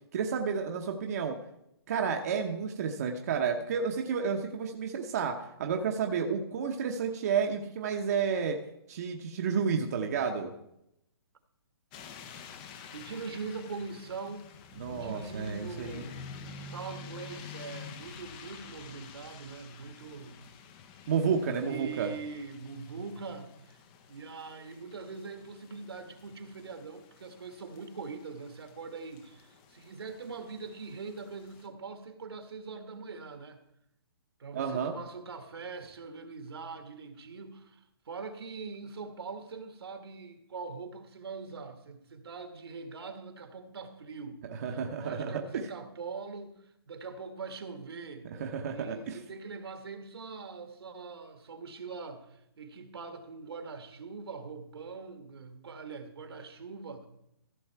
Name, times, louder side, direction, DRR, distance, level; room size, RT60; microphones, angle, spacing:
voice 1, 0.1-1.4 1.9-8.6 8.9-10.5 14.8-16.0 21.1-22.1 34.5-34.9 44.6-45.3 48.4-49.2, right 6 dB, 40° right, 2 dB, 0.9 m, -31 dB
sound 1, 11.9-31.7, left 5 dB, 20° left, 0.6 m, -49 dB
voice 2, 12.9-14.5 14.9-16.2 16.7-20.4 21.6-23.8 24.1-33.6 34.4-44.4 44.7-48.3 48.7-57.1, right 4 dB, 75° right, 7 dB, 1.6 m, -42 dB
14.5 x 6.3 x 4.6 m, 0.80 s
hypercardioid pair, 165°, 13 cm